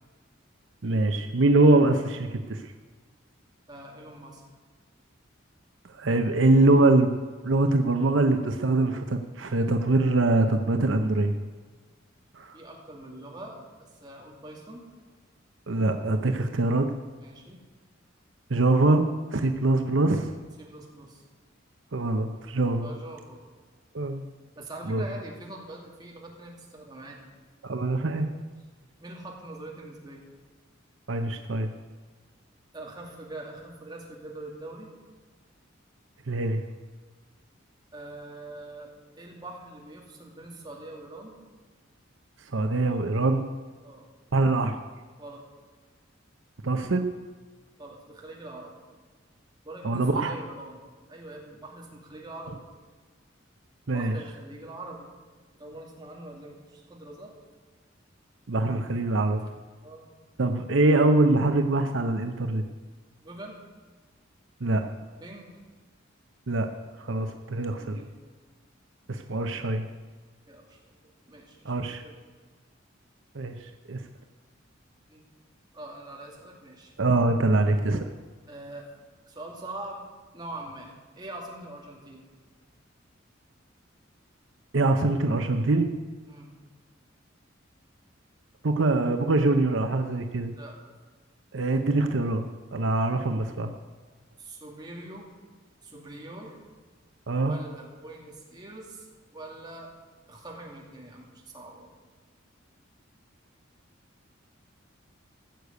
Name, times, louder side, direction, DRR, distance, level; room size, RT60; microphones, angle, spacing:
voice 1, 0.8-2.6 5.9-7.1 7.4-11.3 12.3-12.5 15.7-16.9 18.5-20.3 21.9-22.9 23.9-24.2 24.9-25.0 27.6-28.3 31.1-31.7 36.3-36.6 42.5-43.5 44.3-44.7 46.6-47.0 49.8-50.4 53.9-54.2 58.5-59.4 60.4-62.6 64.6-64.8 66.5-66.7 67.0-68.0 69.1-69.8 71.6-72.0 73.3-73.5 73.9-74.0 77.0-78.0 84.7-85.9 88.6-90.5 91.5-93.7 97.3-97.5, right 2 dB, 75° right, 6 dB, 0.8 m, -23 dB
voice 2, 3.7-4.4 12.5-14.9 17.2-17.6 20.6-21.2 22.8-23.4 24.6-27.2 29.0-30.3 32.7-34.9 37.9-41.3 43.8-44.1 45.2-45.4 47.8-48.7 49.6-50.8 51.1-52.6 53.9-55.1 55.6-57.3 59.4-59.5 59.8-60.1 63.2-63.6 65.2-65.5 67.7-68.1 70.5-72.1 75.1-75.2 75.7-76.9 78.5-78.9 79.3-80.1 80.3-82.2 86.3-86.6 90.5-90.8 94.4-95.3 95.8-96.6 97.4-99.9 100.3-101.9, right 2 dB, 20° right, -1 dB, 2.5 m, -43 dB
15.0 x 6.7 x 8.2 m, 1.4 s
head